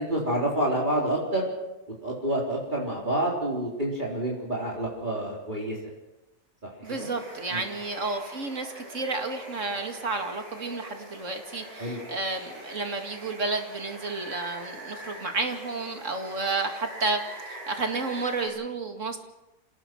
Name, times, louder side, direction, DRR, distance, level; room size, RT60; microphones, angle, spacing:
voice 1, 0.0-1.5 2.0-5.8 6.6-6.7 7.0-7.1 7.5-7.6 11.8-12.0, right 1 dB, 30° right, -3 dB, 4.0 m, -28 dB
voice 2, 6.8-17.2 17.5-19.2, right 3 dB, 55° right, 5 dB, 2.5 m, -31 dB
Water, 6.8-18.5, equal, 80° right, 8.8 m, -43 dB
28.0 x 18.0 x 6.1 m, 0.99 s
omnidirectional pair, 1.6 m